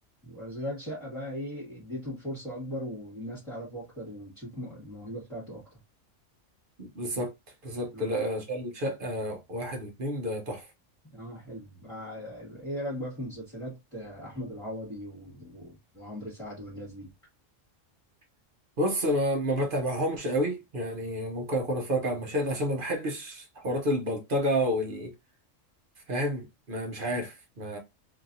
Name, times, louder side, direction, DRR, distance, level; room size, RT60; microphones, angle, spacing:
voice 1, 0.2-5.8 7.9-8.2 11.0-17.1, equal, ahead, 1.7 m, -39 dB
voice 2, 6.8-7.3 7.6-10.6 18.8-25.1 26.1-27.8, equal, 45° right, 0.9 m, -30 dB
3.1 x 2.8 x 2.6 m
omnidirectional pair, 1.3 m